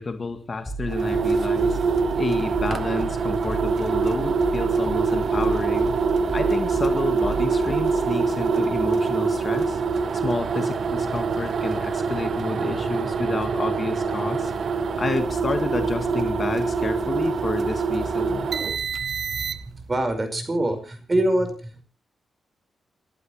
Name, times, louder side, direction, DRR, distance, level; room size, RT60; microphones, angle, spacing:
voice 1, 0.0-1.8 2.2-5.9 6.3-9.8 10.1-14.5 15.0-18.5, left 3 dB, 40° left, 7 dB, 1.8 m, -30 dB
sound 1, 0.7-8.2, right 4 dB, 5° left, 7.0 m, -35 dB
sound 2, 0.9-19.9, right 4 dB, 65° right, 1.1 m, -24 dB
voice 2, 18.9-21.8, right 1 dB, 30° right, 7 dB, 5.2 m, -26 dB
30.0 x 11.5 x 3.3 m, 0.35 s
cardioid pair, 70°, 0 cm